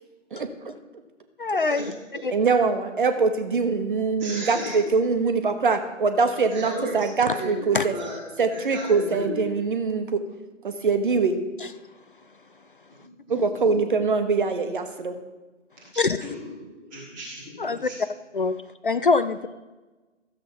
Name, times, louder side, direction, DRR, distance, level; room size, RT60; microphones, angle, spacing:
voice 1, 1.4-1.9 2.2-2.3 7.3-7.4 7.7-7.9 11.6-11.7 13.3-13.4 16.0-16.3 17.6-17.9 18.3-18.6 18.8-19.5, left 4 dB, 45° left, 12 dB, 0.5 m, -24 dB
voice 2, 2.3-7.9 8.4-10.2 10.6-11.4 13.3-15.2, right 4 dB, 40° right, 8 dB, 1.2 m, -23 dB
voice 3, 4.2-4.8 6.5-7.0 7.2-8.2 8.5-9.4 13.0-13.1 13.6-13.8 15.9-18.0, equal, ahead, -13 dB, 0.6 m, -35 dB
13.5 x 7.5 x 5.4 m, 1.2 s
figure-of-eight pair, 140°, 38 cm